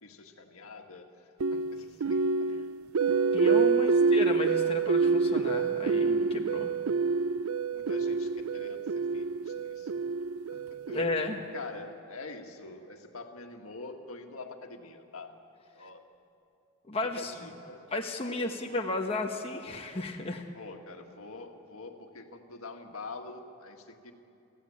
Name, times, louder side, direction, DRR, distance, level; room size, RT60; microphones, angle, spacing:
voice 1, 0.0-2.5 3.7-4.1 7.7-9.9 10.5-11.1 11.5-15.4 15.7-16.0 17.2-17.9 18.3-18.9 20.5-24.1, left 3 dB, 70° left, 4 dB, 1.8 m, -45 dB
sound 1, 1.4-11.5, right 4 dB, 70° right, 0.5 m, -27 dB
voice 2, 3.3-6.7 10.9-11.4 16.9-17.3 17.9-20.5, left 2 dB, 25° left, 1 dB, 1.2 m, -33 dB
29.5 x 15.0 x 8.6 m, 2.8 s
head